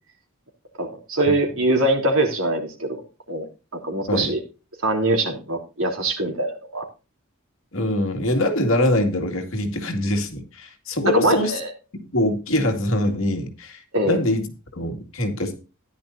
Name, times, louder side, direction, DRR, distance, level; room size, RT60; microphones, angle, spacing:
voice 1, 0.8-3.0 3.3-3.5 3.7-4.4 4.8-6.9 11.1-11.7 13.9-14.2, right 2 dB, 75° right, 2 dB, 3.5 m, -23 dB
voice 2, 7.7-11.6 12.0-14.5 14.7-15.6, left 1 dB, 70° left, 4 dB, 2.3 m, -23 dB
14.0 x 10.5 x 2.7 m, 0.31 s
head